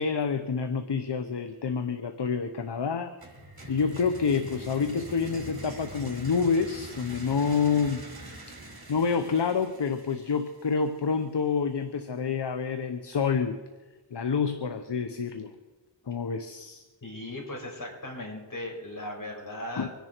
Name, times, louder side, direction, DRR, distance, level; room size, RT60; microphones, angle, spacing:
voice 1, 0.0-3.1 3.7-8.1 8.9-13.6 14.1-15.5 16.1-16.8 19.8-19.9, left 5 dB, 65° left, 9 dB, 1.0 m, -28 dB
sound 1, 3.2-11.0, right 2 dB, 55° right, 4.4 m, -44 dB
voice 2, 17.0-19.9, left 1 dB, 45° left, 0 dB, 5.4 m, -37 dB
25.0 x 10.5 x 4.5 m, 1.2 s
wide cardioid pair, 45°, 44 cm